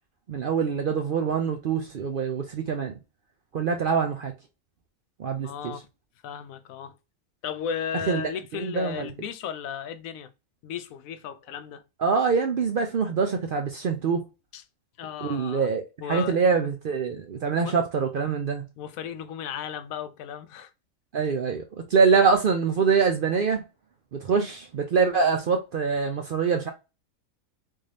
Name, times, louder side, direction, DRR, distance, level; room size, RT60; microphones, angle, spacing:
voice 1, 0.3-2.9 3.5-4.3 5.2-5.7 8.1-9.1 12.0-14.2 15.2-18.6 21.1-21.6 21.9-23.6 24.1-26.7, right 5 dB, 60° right, 0.5 m, -24 dB
voice 2, 5.4-5.9 6.2-6.9 7.4-10.3 10.6-11.8 14.5-14.6 15.0-15.7 16.0-16.6 17.5-17.7 18.8-20.7, left 8 dB, 80° left, 1.0 m, -35 dB
3.7 x 2.6 x 3.2 m
omnidirectional pair, 1.4 m